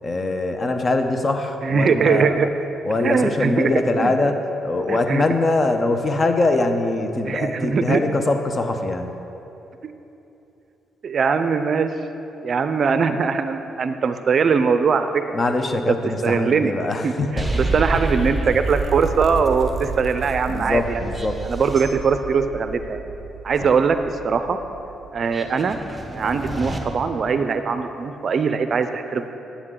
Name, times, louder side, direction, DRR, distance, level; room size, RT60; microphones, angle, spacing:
voice 1, 0.0-2.5 2.8-9.1 15.3-17.5 20.5-21.4 23.6-23.7, left 2 dB, 35° left, 6 dB, 0.7 m, -22 dB
voice 2, 1.6-2.5 3.0-4.1 4.9-5.2 7.3-8.0 9.8-9.9 11.0-11.9 12.4-15.2 16.2-16.7 17.0-21.0 21.4-23.0 23.4-24.0 24.2-24.6 25.1-25.8 26.1-29.3, right 5 dB, 50° right, 9 dB, 0.4 m, -21 dB
sound 1, 17.4-26.8, right 3 dB, 10° right, 0.9 m, -29 dB
9.6 x 8.3 x 3.7 m, 3.0 s
cardioid pair, 90°, 0 cm